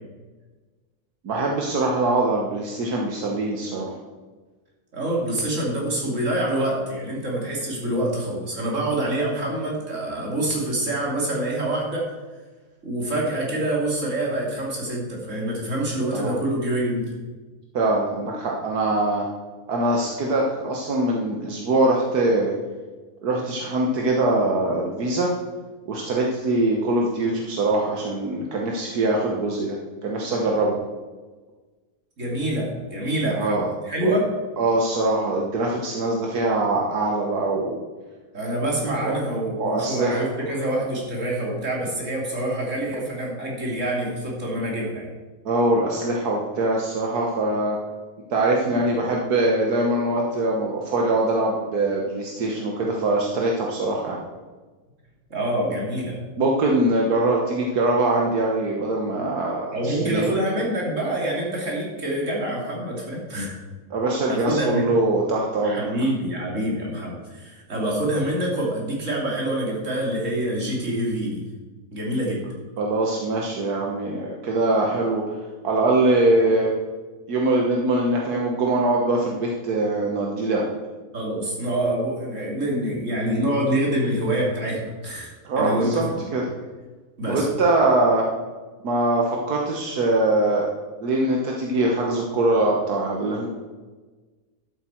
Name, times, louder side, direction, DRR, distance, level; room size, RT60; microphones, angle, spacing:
voice 1, 1.2-3.9 16.1-16.3 17.7-19.2 19.7-22.5 23.2-25.3 25.9-29.8 30.0-30.8 33.3-33.7 34.0-34.1 34.6-37.8 39.0-39.1 39.6-40.2 45.4-47.8 48.3-54.2 56.4-60.3 63.9-65.9 72.8-75.4 75.6-76.7 77.3-80.7 85.4-86.1 86.3-86.4 87.3-88.2 88.8-90.7 91.0-93.5, right 2 dB, 80° right, -1 dB, 1.7 m, -22 dB
voice 2, 4.9-12.1 12.8-17.1 32.2-34.3 38.3-45.1 48.7-48.8 55.3-56.2 59.7-63.5 64.3-64.9 65.6-71.4 71.9-72.4 81.1-86.2 87.2-87.5, right 1 dB, 50° right, -3 dB, 3.1 m, -26 dB
12.0 x 8.2 x 4.5 m, 1.3 s
omnidirectional pair, 1.6 m